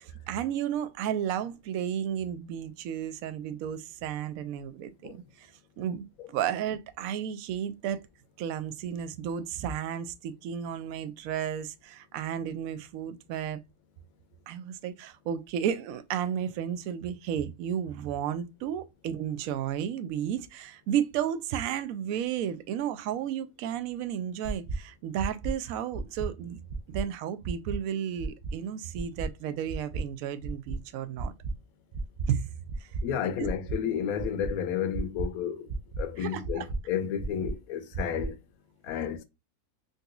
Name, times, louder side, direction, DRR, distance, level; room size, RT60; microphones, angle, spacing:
voice 1, 0.0-8.0 8.4-13.6 14.5-26.6 26.9-31.3 32.3-32.5 32.8-32.9 36.2-36.7, right 9 dB, 70° right, 0.9 m, -33 dB
sound 1, 24.4-24.8 25.2-25.5 25.9-26.3 26.7-27.0 27.4-27.8 28.2-28.5 28.9-29.3 29.7-30.0 30.4-30.8 31.2-31.5 31.9-32.3 32.7-33.0 33.4-33.8 34.2-34.5 34.9-35.3 35.7-36.0 36.4-36.8 37.2-37.5 37.9-38.3, right 3 dB, 90° right, 0.3 m, -32 dB
voice 2, 33.0-35.7 36.0-38.4 38.8-39.2, left 8 dB, 80° left, 1.1 m, -31 dB
3.9 x 2.6 x 2.3 m
omnidirectional pair, 1.6 m